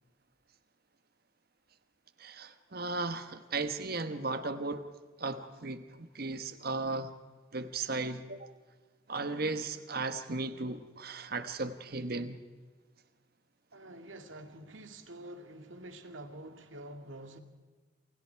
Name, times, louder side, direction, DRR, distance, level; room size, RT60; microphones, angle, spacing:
voice 1, 2.2-4.8 5.2-7.1 7.5-8.5 9.1-12.4, right 3 dB, 50° right, 1.3 m, -36 dB
voice 2, 13.7-17.4, right 1 dB, 80° right, 2.3 m, -47 dB
28.5 x 28.5 x 4.7 m
head